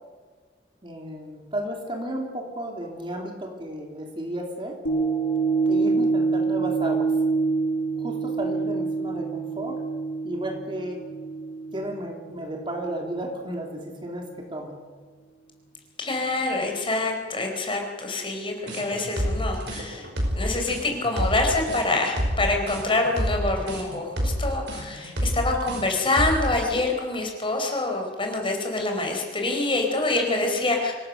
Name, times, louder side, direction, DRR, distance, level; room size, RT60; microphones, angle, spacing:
voice 1, 0.8-4.8 5.7-7.1 8.0-9.8 10.2-11.0 11.7-14.7, right 1 dB, 30° right, 2 dB, 3.1 m, -33 dB
sound 1, 4.8-13.2 13.7-13.8, right 4 dB, 75° left, 6.1 m, -26 dB
voice 2, 16.0-20.1 20.3-30.9, left 2 dB, 30° left, 2 dB, 4.5 m, -26 dB
sound 2, 18.7-26.5, equal, 85° right, 5.7 m, -28 dB
25.0 x 18.0 x 6.6 m, 1.5 s
head